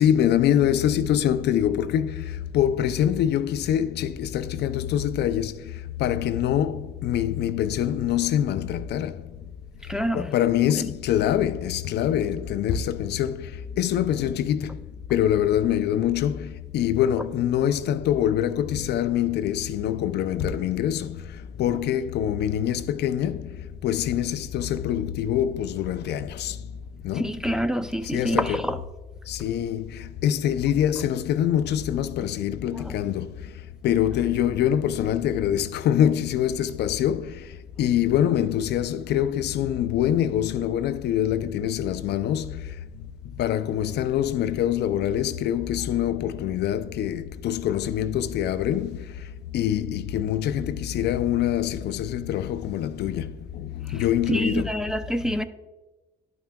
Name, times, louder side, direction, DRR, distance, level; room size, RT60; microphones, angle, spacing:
voice 1, 0.0-5.7 6.0-9.3 10.1-14.8 15.1-26.6 27.0-27.4 28.0-28.7 29.3-33.5 33.8-42.7 43.3-49.3 49.5-54.7, left 10 dB, 75° left, 0.4 m, -25 dB
voice 2, 9.9-10.3 27.2-28.8 32.7-32.9 54.3-55.4, equal, 5° right, 0.4 m, -26 dB
11.5 x 5.7 x 2.2 m
cardioid pair, 90°, 17 cm